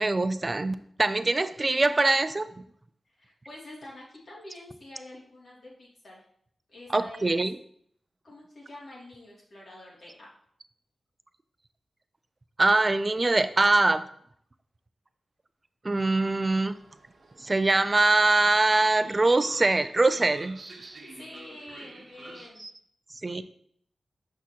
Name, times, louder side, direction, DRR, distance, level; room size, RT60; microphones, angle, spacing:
voice 1, 0.0-2.5 6.9-7.6 12.6-14.1 15.8-16.8 17.4-20.6 23.2-23.4, right 2 dB, 35° right, 12 dB, 0.4 m, -23 dB
voice 2, 3.1-6.2 6.7-7.4 8.2-10.3 21.1-22.6, left 1 dB, 65° left, -5 dB, 2.7 m, -46 dB
Train, 16.1-22.5, right 3 dB, 60° right, 1.0 m, -49 dB
6.1 x 5.7 x 2.9 m, 0.65 s
cardioid pair, 55°, 0 cm